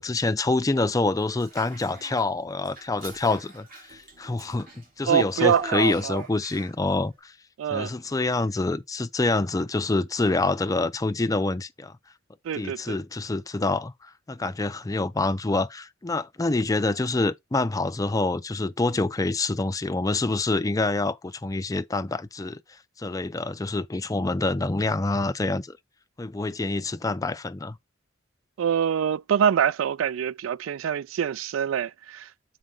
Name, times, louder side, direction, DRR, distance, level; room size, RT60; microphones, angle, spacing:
voice 1, 0.0-7.3 7.7-11.9 12.5-22.6 23.0-25.8 26.2-27.8, left 2 dB, 20° left, 0.4 m, -26 dB
Child speech kid speaking / Bathtub (filling or washing), 1.3-2.3 2.6-6.9, right 2 dB, 45° right, 3.7 m, -43 dB
voice 2, 5.1-6.2 7.6-7.9 12.4-13.0 28.6-32.3, right 8 dB, 80° right, 0.3 m, -25 dB
7.7 x 4.6 x 3.8 m
head